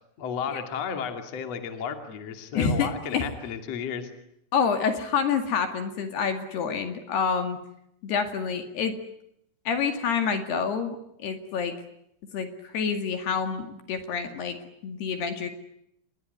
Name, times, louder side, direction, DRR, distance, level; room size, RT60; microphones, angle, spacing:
voice 1, 0.2-4.1, left 7 dB, 40° left, 6 dB, 3.0 m, -33 dB
voice 2, 2.5-3.2 4.5-7.6 8.0-8.9 9.7-11.7 12.3-14.6 14.8-15.5, left 6 dB, 60° left, 7 dB, 4.0 m, -27 dB
28.5 x 21.5 x 9.5 m, 0.75 s
omnidirectional pair, 5.7 m